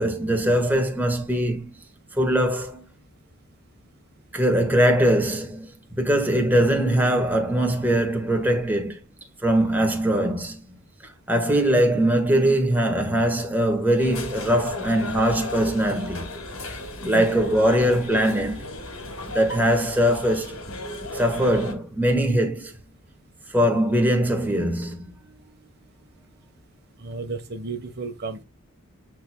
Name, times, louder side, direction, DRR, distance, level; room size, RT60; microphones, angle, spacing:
voice 1, 0.0-1.8 2.2-2.8 4.3-5.7 6.0-9.0 9.4-10.6 11.3-16.3 17.0-18.6 19.3-20.6 21.1-22.7 23.5-25.0, right 1 dB, 10° right, 1.7 m, -21 dB
sound 1, 14.0-21.7, left 2 dB, 75° left, 2.6 m, -34 dB
voice 2, 27.0-28.4, right 4 dB, 50° right, 1.3 m, -33 dB
9.1 x 4.6 x 2.3 m
head